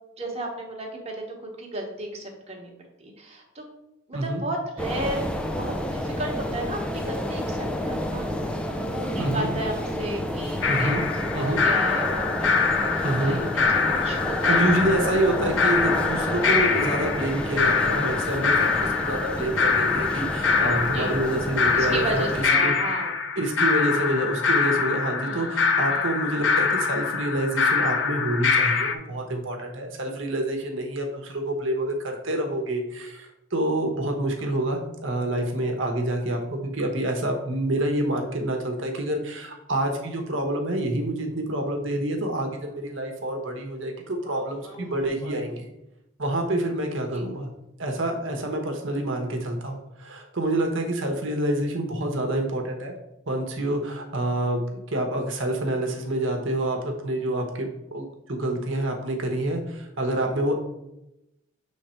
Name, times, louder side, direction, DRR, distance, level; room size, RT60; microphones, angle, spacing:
voice 1, 0.2-1.2 1.6-2.7 3.0-3.6 4.1-5.2 5.6-14.6 20.9-21.2 21.7-23.1 25.2-25.6 25.9-26.1 47.1-47.3, right 1 dB, 30° right, 0 dB, 1.1 m, -34 dB
sound 1, 4.8-22.4, equal, 5° left, 0.4 m, -30 dB
voice 2, 9.2-9.5 10.7-11.0 11.3-11.6 13.0-13.4 14.4-22.3 22.6-22.7 23.4-45.7 46.2-47.5 47.8-52.9 53.3-60.5, right 1 dB, 60° right, 3 dB, 1.0 m, -27 dB
sound 2, 10.6-29.0, left 5 dB, 60° left, 0.5 m, -24 dB
sound 3, 44.2-45.5 46.5-46.6 47.3-47.4 47.9-48.0 48.6-48.7 49.2-49.4 49.7-49.8, right 1 dB, 20° left, 1.0 m, -45 dB
6.5 x 3.3 x 4.4 m, 0.88 s
head